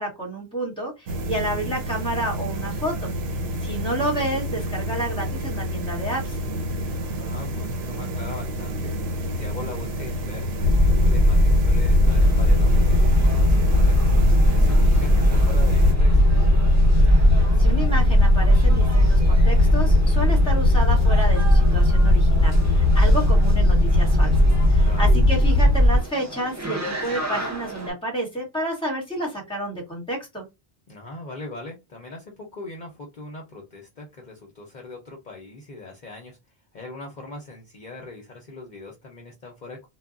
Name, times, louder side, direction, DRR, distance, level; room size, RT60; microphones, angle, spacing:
voice 1, 0.0-3.1 3.6-6.4 17.6-30.5, right 1 dB, 5° left, 1.2 m, -30 dB
sound 1, 1.1-15.9, right 1 dB, 80° right, 0.9 m, -30 dB
voice 2, 7.0-9.0 9.2-14.2 14.5-16.3 24.8-25.1 30.9-36.4 36.7-39.8, left 2 dB, 50° left, 0.8 m, -41 dB
sound 2, 10.6-26.0, left 1 dB, 55° right, 1.2 m, -17 dB
sound 3, 12.0-27.9, right 1 dB, 20° right, 0.6 m, -37 dB
2.3 x 2.2 x 3.7 m
omnidirectional pair, 1.0 m